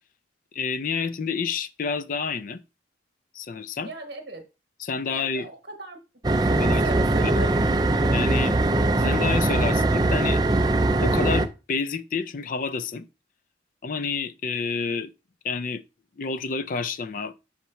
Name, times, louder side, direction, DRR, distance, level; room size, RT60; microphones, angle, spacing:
voice 1, 0.5-2.6 3.3-3.9 4.8-5.5 6.6-6.8 7.2-7.3 8.1-8.5 9.0-10.4 11.0-13.1 13.8-15.1 15.4-15.8 16.2-17.3, left 5 dB, 45° left, 0.4 m, -29 dB
voice 2, 3.8-4.4 5.1-6.0 6.3-7.9, right 2 dB, 65° right, 1.1 m, -38 dB
sound 1, 6.2-11.5, right 2 dB, 20° right, 0.4 m, -21 dB
5.7 x 3.0 x 5.6 m
head